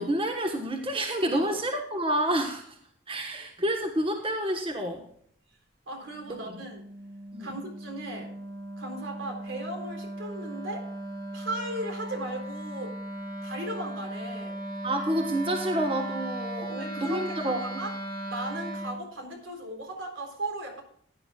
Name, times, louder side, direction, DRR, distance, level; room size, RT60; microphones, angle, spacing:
voice 1, 0.0-2.8 3.1-5.0 6.3-6.5 7.3-7.5 14.8-17.8, right 1 dB, 30° right, 3 dB, 1.3 m, -29 dB
voice 2, 5.9-6.9 7.4-8.4 8.8-10.9 11.3-12.9 13.4-14.6 16.6-17.9 18.3-20.8, right 1 dB, 80° right, 3 dB, 3.7 m, -37 dB
Wind instrument woodwind instrument, 6.1-19.0, right 1 dB, 50° right, 1.8 m, -37 dB
16.5 x 9.9 x 2.3 m, 0.63 s
head